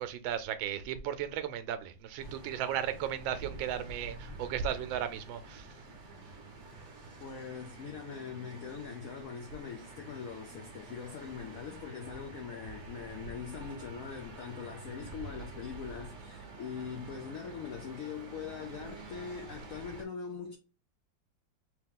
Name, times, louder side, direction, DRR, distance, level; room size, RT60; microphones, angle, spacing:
voice 1, 0.0-5.7, right 9 dB, 85° right, 1.4 m, -35 dB
sound 1, 2.2-20.0, right 3 dB, 50° right, 1.0 m, -48 dB
voice 2, 7.2-20.6, left 6 dB, 75° left, 0.7 m, -42 dB
3.4 x 2.9 x 3.6 m
omnidirectional pair, 2.1 m